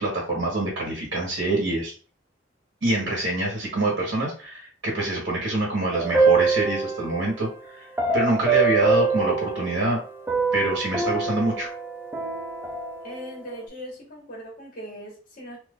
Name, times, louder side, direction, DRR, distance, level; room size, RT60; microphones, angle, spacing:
voice 1, 0.0-1.9 2.8-7.9 8.1-10.0 10.5-11.7, right 2 dB, 65° right, -3 dB, 1.3 m, -25 dB
sound 1, 5.9-7.3 8.0-10.0 10.3-13.2, right 4 dB, 10° right, 0.5 m, -24 dB
voice 2, 13.0-15.6, equal, 45° left, -3 dB, 1.4 m, -39 dB
3.0 x 2.6 x 3.5 m, 0.39 s
head